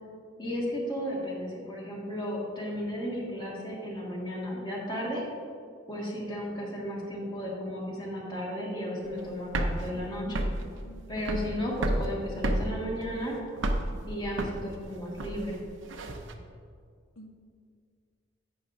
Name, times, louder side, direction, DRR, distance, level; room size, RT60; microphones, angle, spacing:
voice 1, 0.4-5.2 5.9-10.4 11.1-13.4 14.0-15.6, equal, 25° left, -4 dB, 1.9 m, -34 dB
sound 1, 9.0-16.3, right 1 dB, 70° right, 0.7 m, -32 dB
voice 2, 9.9-11.1 17.2-17.3, right 1 dB, 85° left, 2 dB, 0.9 m, -49 dB
11.0 x 9.1 x 2.7 m, 2.2 s
head